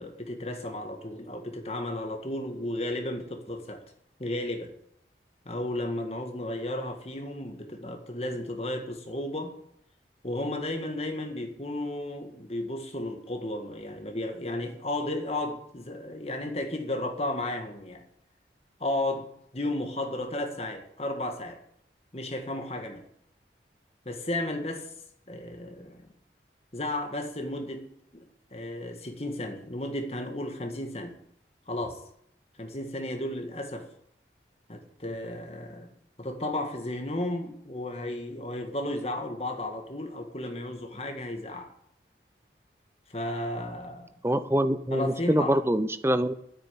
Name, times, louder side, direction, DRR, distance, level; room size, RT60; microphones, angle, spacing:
voice 1, 0.0-3.8 4.2-4.7 5.4-9.5 10.2-18.0 18.8-21.6 22.1-23.0 24.0-24.9 25.3-26.1 26.7-27.8 28.1-28.2 28.5-31.1 31.7-32.0 32.6-33.9 34.7-35.9 36.2-41.7 43.1-44.1 44.9-45.6, left 1 dB, 35° left, 1.7 m, -33 dB
voice 2, 44.2-46.3, right 1 dB, 15° right, 0.6 m, -25 dB
9.9 x 8.8 x 8.4 m
head